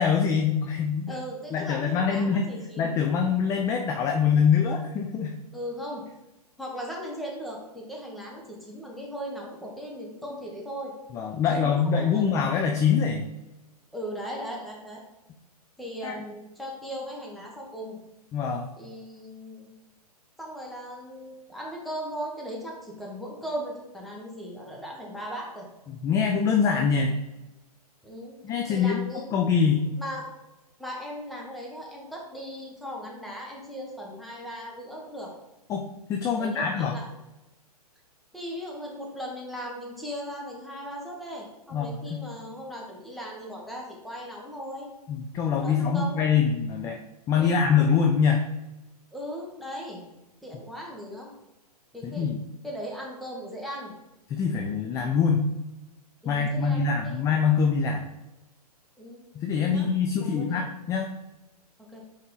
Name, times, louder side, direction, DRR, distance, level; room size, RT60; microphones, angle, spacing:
voice 1, 0.0-1.2 1.5-2.5 2.8-5.4 11.1-13.3 16.0-16.1 18.3-18.7 25.9-27.1 28.4-29.0 29.3-29.9 35.7-37.0 41.7-42.3 45.1-47.0 47.3-48.5 52.0-52.4 54.3-55.5 56.3-58.0 59.3-61.1, left 6 dB, 15° left, 3 dB, 0.4 m, -24 dB
voice 2, 1.1-2.9 5.5-6.0 6.6-10.9 11.5-12.3 13.9-15.0 15.8-18.0 18.8-19.7 20.4-25.6 28.0-28.4 28.7-29.3 30.0-30.2 30.8-35.3 36.4-37.1 38.3-44.9 45.5-46.2 47.3-47.6 49.1-50.0 50.4-51.3 51.9-52.3 52.6-53.9 56.2-57.2 59.0-59.2 59.7-59.9 60.2-60.6 61.8-62.0, equal, ahead, -3 dB, 1.2 m, -38 dB
5.8 x 4.3 x 3.8 m, 1.0 s
hypercardioid pair, 130°, 20 cm